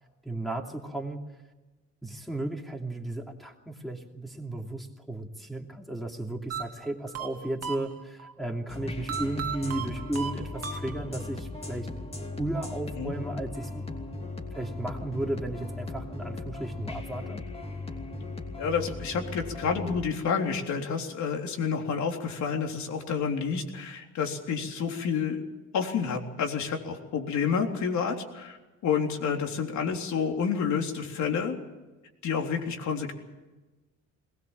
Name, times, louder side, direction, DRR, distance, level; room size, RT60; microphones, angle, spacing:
voice 1, 0.2-1.3 2.0-11.9 12.4-13.8 14.5-17.4, right 1 dB, ahead, -1 dB, 2.8 m, -34 dB
sound 1, 6.5-8.3 9.1-11.4, right 7 dB, 55° right, 1.8 m, -36 dB
sound 2, 8.7-20.1, left 2 dB, 20° left, 3.0 m, -38 dB
voice 2, 18.6-25.4 25.7-28.6 28.8-31.6 32.2-33.1, left 6 dB, 70° left, 2 dB, 3.7 m, -29 dB
21.5 x 20.0 x 7.4 m, 1.2 s
cardioid pair, 140°, 30 cm